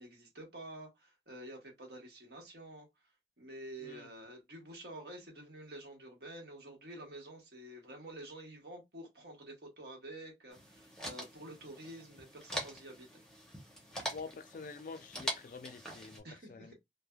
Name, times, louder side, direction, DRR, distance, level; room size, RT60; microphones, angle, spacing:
voice 1, 0.0-2.9 3.4-13.2 16.2-16.7, right 1 dB, 65° right, 1.1 m, -49 dB
sound 1, 10.5-16.2, equal, 5° left, 0.7 m, -43 dB
voice 2, 14.1-16.7, left 4 dB, 50° left, 0.3 m, -47 dB
3.2 x 2.1 x 2.2 m
head